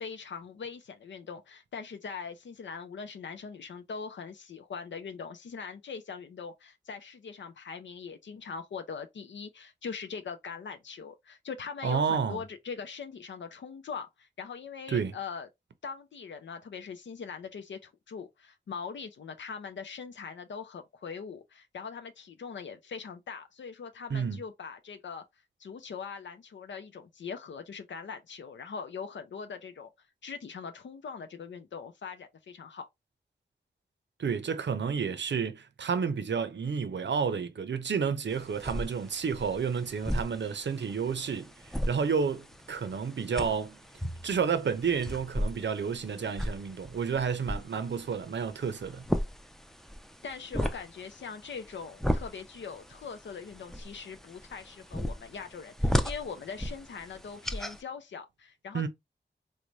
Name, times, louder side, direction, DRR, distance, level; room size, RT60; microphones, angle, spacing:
voice 1, 0.0-15.5 15.8-25.2 25.6-29.9 30.2-32.9 50.2-58.9, left 5 dB, 90° left, 0.4 m, -41 dB
voice 2, 11.8-12.4 14.9-15.1 24.1-24.4 34.2-41.5 41.9-43.8 44.2-49.0 58.7-58.9, right 6 dB, 80° right, 0.6 m, -30 dB
sound 1, 38.3-57.8, equal, ahead, 0.4 m, -36 dB
3.2 x 2.1 x 3.8 m
wide cardioid pair, 65°, 19 cm